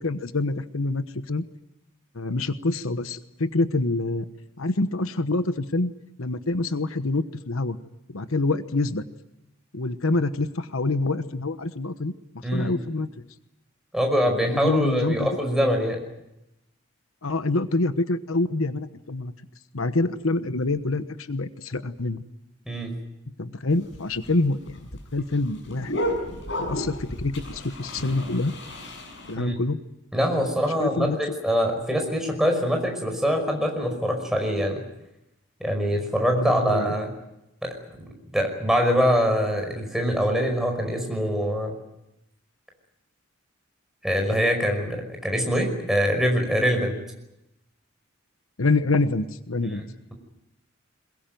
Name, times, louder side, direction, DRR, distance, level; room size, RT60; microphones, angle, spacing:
voice 1, 0.0-1.4 2.1-4.3 4.6-5.9 6.2-7.8 8.1-9.0 9.7-13.1 14.5-15.3 17.2-19.3 19.7-22.2 23.4-24.8 25.1-25.9 26.6-28.5 29.3-29.8 30.8-31.2 36.3-36.9 48.6-49.8, left 2 dB, 90° left, 11 dB, 1.1 m, -26 dB
voice 2, 12.4-12.8 13.9-16.0 22.7-22.9 29.4-29.5 30.1-34.8 35.6-37.1 37.6-37.7 38.3-41.8 44.0-46.9 49.8-50.1, equal, ahead, 2 dB, 5.4 m, -24 dB
sound 1, 23.7-29.3, equal, 60° left, 7.1 m, -33 dB
22.0 x 22.0 x 9.2 m, 0.89 s
head